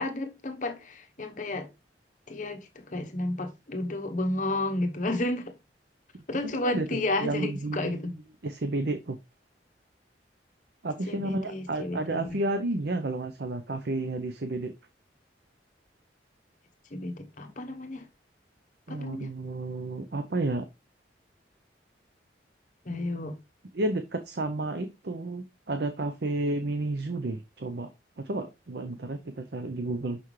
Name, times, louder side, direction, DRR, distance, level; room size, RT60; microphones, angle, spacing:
voice 1, 0.0-1.7 2.3-5.5 6.3-8.2 11.1-12.4 16.9-18.1 18.9-19.3 22.8-23.4, left 2 dB, 45° left, 0.9 m, -32 dB
voice 2, 6.6-8.0 8.4-9.2 10.8-14.7 18.9-20.7 23.7-27.9 28.2-30.2, right 2 dB, 60° right, 0.7 m, -31 dB
6.1 x 5.7 x 3.2 m
head